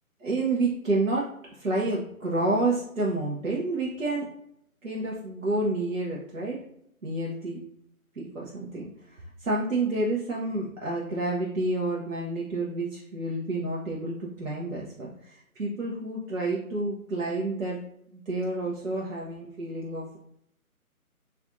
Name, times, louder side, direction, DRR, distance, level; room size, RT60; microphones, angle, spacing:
voice 1, 0.2-1.3 1.6-4.3 4.8-6.6 7.0-7.6 8.2-8.8 9.4-17.8 18.1-20.2, right 2 dB, 60° right, -4 dB, 0.7 m, -29 dB
2.5 x 2.5 x 3.6 m, 0.74 s
figure-of-eight pair, 155°, 44 cm